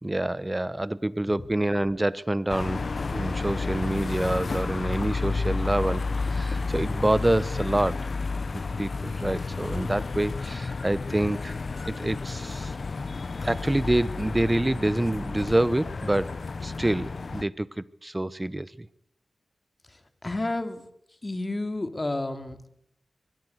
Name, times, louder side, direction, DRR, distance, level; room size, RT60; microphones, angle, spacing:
voice 1, 0.0-2.8 3.1-8.1 8.5-11.6 11.9-12.7 13.4-16.3 16.6-18.9, right 1 dB, 20° right, 19 dB, 1.0 m, -27 dB
sound 1, 2.5-17.4, left 4 dB, 60° left, 0.9 m, -31 dB
voice 2, 19.8-20.8 21.2-22.7, left 2 dB, 30° left, 9 dB, 2.8 m, -31 dB
24.0 x 20.5 x 8.0 m, 0.72 s
cardioid pair, 65°, 0 cm